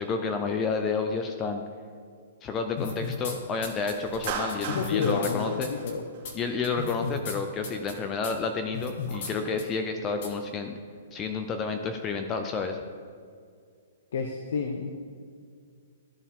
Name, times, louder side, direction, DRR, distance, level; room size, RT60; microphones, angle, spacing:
voice 1, 0.0-1.6 2.4-5.7 6.3-10.7 11.1-12.8, left 4 dB, 20° left, 5 dB, 0.5 m, -30 dB
sound 1, 2.8-3.3 3.6-5.3 5.6-5.9 6.2-6.3 6.6-7.4 7.6-7.9 8.2-8.3 8.7-9.3 9.6-9.7 10.2-10.3, left 5 dB, 50° left, 1.2 m, -34 dB
Clapping, 4.3-6.6, right 5 dB, 40° right, 1.4 m, -36 dB
voice 2, 4.7-6.0 14.1-14.9, left 5 dB, 65° left, 3 dB, 0.7 m, -30 dB
13.5 x 4.6 x 3.6 m, 2.2 s
hypercardioid pair, 150°, 0 cm